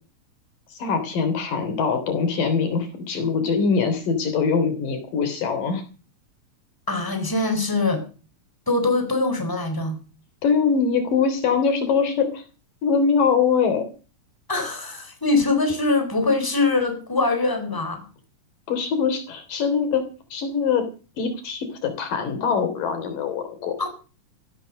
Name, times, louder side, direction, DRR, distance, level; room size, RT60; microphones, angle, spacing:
voice 1, 0.7-5.8 10.4-12.4 12.8-13.8 18.7-20.0 20.3-20.8 21.2-23.7, left 5 dB, 90° left, 4.9 m, -23 dB
voice 2, 6.9-8.0 8.7-10.0 14.5-18.0 23.8-23.9, left 3 dB, 5° left, 3.9 m, -23 dB
15.5 x 12.0 x 6.6 m
omnidirectional pair, 3.7 m